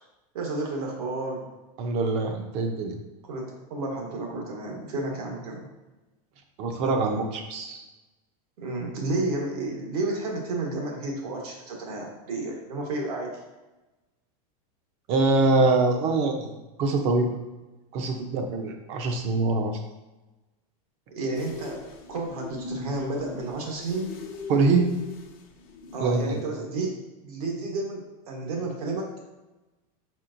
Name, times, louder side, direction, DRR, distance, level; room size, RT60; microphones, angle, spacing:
voice 1, 0.3-1.5 3.2-5.7 8.6-13.3 21.1-24.2 25.9-27.0 27.2-29.1, right 2 dB, 80° right, 0 dB, 1.3 m, -31 dB
voice 2, 1.8-3.0 6.6-7.8 15.1-17.4 17.9-19.8 24.5-24.9 26.0-26.4, right 3 dB, 35° right, 5 dB, 0.5 m, -24 dB
sound 1, 21.3-26.5, left 3 dB, 65° left, 0.8 m, -40 dB
4.3 x 4.2 x 2.5 m, 1.1 s
supercardioid pair, 170°, 19 cm